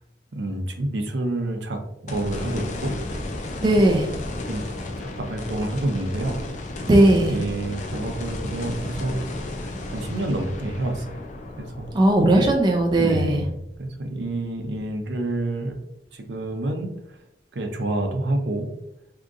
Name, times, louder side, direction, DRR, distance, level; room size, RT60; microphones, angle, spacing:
voice 1, 0.3-2.9 3.8-3.9 4.5-4.7 5.2-6.4 7.1-9.2 9.9-11.1 11.6-11.9 13.0-13.5 13.8-15.7 16.1-16.9 17.5-18.7, right 1 dB, 70° right, 4 dB, 0.6 m, -28 dB
sound 1, 2.1-14.4 14.9-15.0 18.3-18.4, left 1 dB, 45° left, 0.5 m, -33 dB
voice 2, 3.6-4.1 6.9-7.4 11.9-13.4, right 1 dB, 25° right, 1 dB, 0.4 m, -18 dB
3.5 x 2.8 x 2.4 m, 0.82 s
head